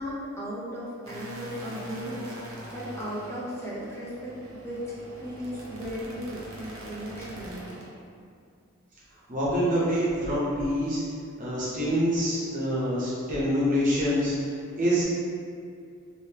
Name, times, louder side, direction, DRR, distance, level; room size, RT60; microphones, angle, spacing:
voice 1, 0.0-4.8 5.2-7.7, equal, 15° left, -7 dB, 0.6 m, -36 dB
sound 1, 1.0-7.9, equal, 75° right, 0.7 m, -43 dB
voice 2, 9.3-11.0 11.4-14.3 14.8-15.0, equal, 40° right, -8 dB, 0.9 m, -25 dB
3.4 x 2.7 x 2.9 m, 2.4 s
head